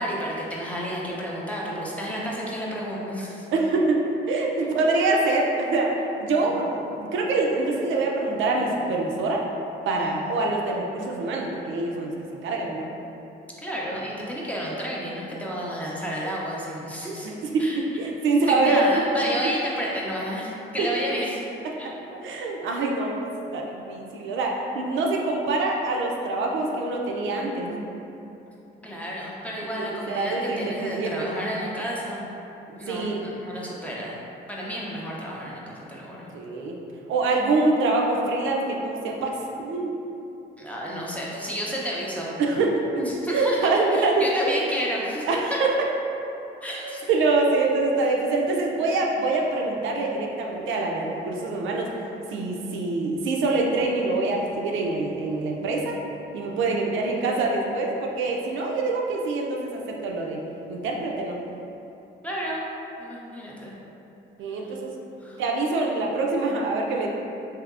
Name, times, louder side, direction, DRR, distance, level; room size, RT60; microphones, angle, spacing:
voice 1, 0.0-3.5 10.0-10.1 13.6-17.3 17.6-17.8 18.5-21.4 21.8-21.9 28.8-32.3 32.8-34.2 34.5-36.3 40.6-42.3 43.0-45.6 46.6-47.0 62.2-62.6 63.0-63.8 64.5-64.8 65.2-65.4, equal, 5° left, -5 dB, 0.5 m, -31 dB
voice 2, 3.5-9.4 9.9-12.9 17.2-17.7 18.0-18.8 20.8-20.9 21.8-23.2 23.5-27.9 29.8-31.1 32.9-33.3 36.3-36.8 37.1-39.9 42.4-44.3 45.3-45.9 46.8-51.9 52.3-56.0 56.3-60.4 60.7-61.4 64.4-64.9 65.4-67.1, right 3 dB, 75° right, -1 dB, 0.4 m, -25 dB
3.4 x 2.8 x 2.4 m, 2.9 s
cardioid pair, 90°, 20 cm